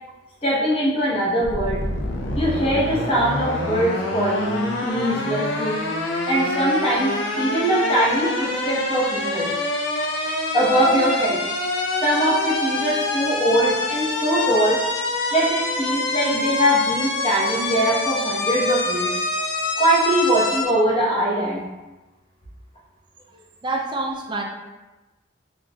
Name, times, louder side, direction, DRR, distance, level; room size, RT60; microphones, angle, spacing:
voice 1, 0.4-1.8 2.3-5.8 6.3-9.5 10.5-11.4 12.0-14.8 15.3-19.2 19.8-21.6, right 1 dB, 30° left, -7 dB, 0.9 m, -22 dB
sound 1, 1.4-20.7, left 2 dB, 75° left, 0.5 m, -26 dB
voice 2, 23.3-24.4, right 2 dB, 25° right, 1 dB, 0.3 m, -28 dB
3.8 x 2.9 x 2.3 m, 1.1 s
head